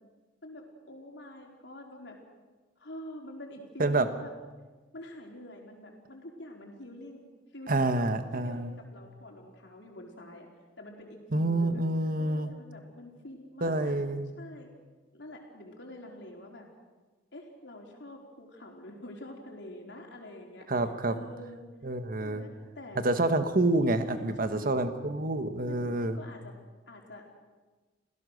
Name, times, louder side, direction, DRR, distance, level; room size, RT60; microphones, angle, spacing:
voice 1, 0.4-2.2 2.8-4.3 4.9-7.2 7.5-8.1 8.3-10.5 10.8-11.8 12.2-14.0 14.4-14.7 15.1-16.7 17.3-20.7 21.1-21.7 22.2-23.0 24.1-25.1 25.6-26.5 26.9-27.4, left 1 dB, 70° left, 1 dB, 4.4 m, -46 dB
voice 2, 7.7-8.8 11.3-12.5 13.6-14.3 20.7-21.2 21.8-22.4 23.0-26.2, right 2 dB, 50° right, 9 dB, 1.5 m, -28 dB
27.5 x 16.5 x 6.6 m, 1.3 s
head